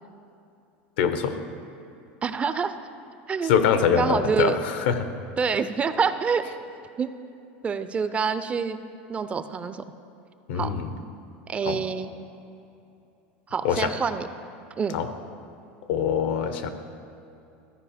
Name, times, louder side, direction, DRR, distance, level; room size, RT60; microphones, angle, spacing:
voice 1, 1.0-1.4 3.4-5.1 10.5-10.9 11.6-11.8 13.6-13.9 14.9-15.1 15.9-16.7, left 7 dB, 80° left, 9 dB, 0.7 m, -24 dB
voice 2, 2.2-2.8 3.3-4.6 5.4-6.5 7.0-7.1 7.6-8.8 9.1-9.8 10.5-10.7 11.5-12.1 13.5-14.3 14.8-15.0, right 5 dB, 20° right, 11 dB, 0.4 m, -26 dB
13.5 x 4.7 x 5.0 m, 2.7 s
supercardioid pair, 125°, 6 cm